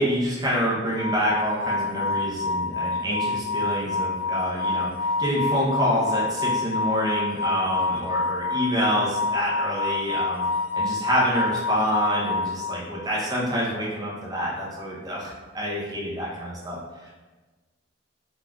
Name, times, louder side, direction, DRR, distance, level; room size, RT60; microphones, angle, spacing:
voice 1, 0.0-10.4 10.7-16.8 17.0-17.1, equal, 20° right, -5 dB, 0.5 m, -27 dB
sound 1, 0.9-13.2, left 3 dB, 85° left, 0.4 m, -27 dB
3.5 x 2.3 x 2.2 m, 1.3 s
head